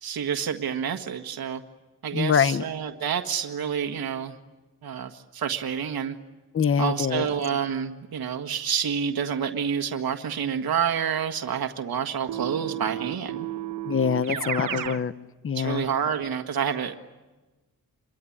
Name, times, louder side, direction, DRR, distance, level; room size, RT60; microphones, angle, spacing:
voice 1, 0.0-1.6 2.0-4.4 4.8-6.1 6.8-13.5 14.3-14.5 15.5-16.9, right 7 dB, 75° right, 5 dB, 1.7 m, -28 dB
voice 2, 2.1-2.6 6.5-7.3 13.9-15.1 15.4-15.9, left 7 dB, 35° left, 14 dB, 0.8 m, -24 dB
Keyboard (musical), 12.3-15.0, right 11 dB, 55° right, 1.1 m, -32 dB
28.0 x 23.5 x 8.7 m, 1.2 s
wide cardioid pair, 150°, 36 cm